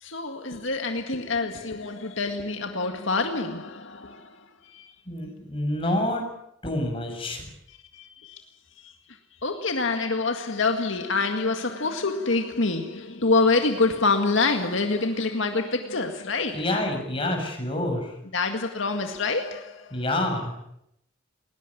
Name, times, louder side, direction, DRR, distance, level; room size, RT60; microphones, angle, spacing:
voice 1, 0.0-4.9 7.7-8.4 8.8-16.6 18.3-20.0, left 3 dB, 75° left, 2.0 m, -26 dB
voice 2, 5.1-6.2 6.6-7.4 16.5-18.1 19.9-20.6, left 1 dB, 25° left, 7.0 m, -27 dB
20.0 x 20.0 x 9.7 m
head